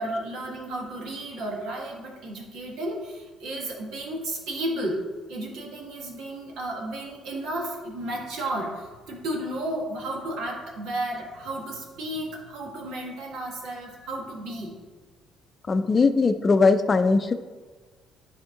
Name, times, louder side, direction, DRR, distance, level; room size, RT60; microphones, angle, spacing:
voice 1, 0.0-14.8, right 1 dB, 75° right, -1 dB, 1.7 m, -33 dB
voice 2, 15.7-17.3, left 4 dB, 35° left, 10 dB, 0.5 m, -20 dB
10.5 x 3.6 x 3.8 m, 1.4 s
supercardioid pair, 75°, 0 cm